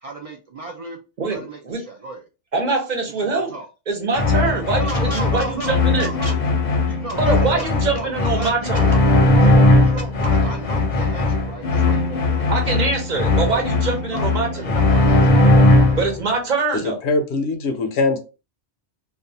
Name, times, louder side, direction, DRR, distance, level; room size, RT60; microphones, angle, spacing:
voice 1, 0.0-1.0 1.3-2.2 3.2-3.7 4.7-6.4 6.9-9.0 9.3-12.5 14.1-16.0, right 3 dB, 70° right, 1 dB, 0.3 m, -34 dB
voice 2, 1.2-1.8 2.5-3.5 3.9-6.1 7.2-8.9 12.5-14.8 16.0-17.0, right 3 dB, 45° right, 2 dB, 0.8 m, -24 dB
sound 1, 4.1-16.2, left 2 dB, 50° left, 0.7 m, -18 dB
voice 3, 16.7-18.2, left 3 dB, 80° left, 6 dB, 0.9 m, -22 dB
2.4 x 2.3 x 2.6 m, 0.30 s
omnidirectional pair, 1.1 m